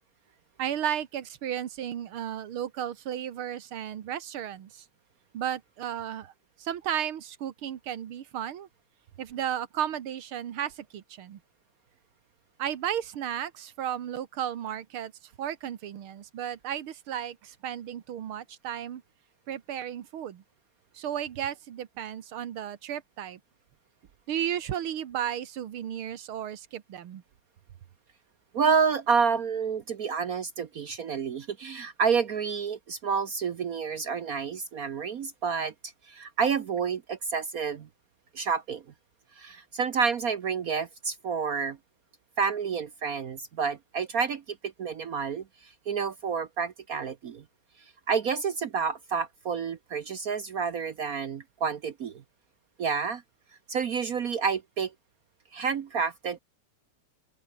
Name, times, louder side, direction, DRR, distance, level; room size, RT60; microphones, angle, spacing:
voice 1, 0.6-4.9 5.3-6.3 6.6-8.7 9.2-11.4 12.6-15.1 15.4-19.0 19.5-20.4 20.9-23.4 24.3-27.2, right 10 dB, 75° right, 2.2 m, -34 dB
voice 2, 28.5-35.7 36.1-37.9 38.3-38.8 39.4-41.8 42.4-47.4 48.1-52.2 52.8-53.2 53.7-54.9 55.5-56.4, right 6 dB, 55° right, 1.0 m, -29 dB
open air
omnidirectional pair, 2.4 m